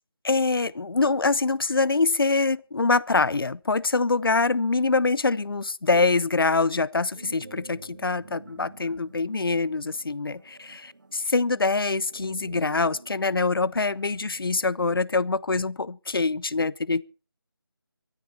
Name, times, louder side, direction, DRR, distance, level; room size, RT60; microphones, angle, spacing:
voice 1, 0.2-17.0, left 3 dB, 65° left, 0.7 m, -24 dB
sound 1, 7.1-14.6, right 3 dB, 50° right, 2.6 m, -49 dB
23.5 x 10.0 x 4.2 m
figure-of-eight pair, 175°, 13 cm